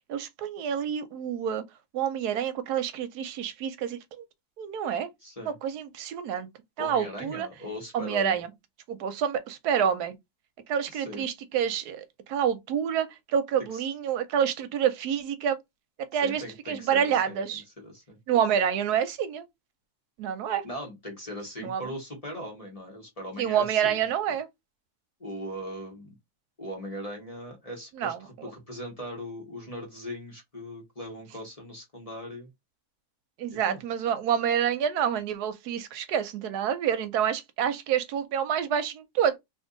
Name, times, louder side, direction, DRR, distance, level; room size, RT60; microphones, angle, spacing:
voice 1, 0.1-1.6 1.9-4.2 4.6-5.1 5.5-6.5 6.8-7.5 7.9-8.5 8.9-10.2 10.7-15.6 16.1-17.6 18.3-19.4 20.2-20.6 21.6-21.9 23.4-24.5 28.0-28.5 33.4-39.4, right 8 dB, 85° right, 1.2 m, -28 dB
voice 2, 5.2-5.5 6.8-8.4 10.9-11.2 13.7-13.8 16.1-18.2 20.6-24.1 25.2-26.1 26.6-32.5 33.5-33.8, equal, 25° left, 1.0 m, -39 dB
2.7 x 2.6 x 3.7 m
omnidirectional pair, 1.7 m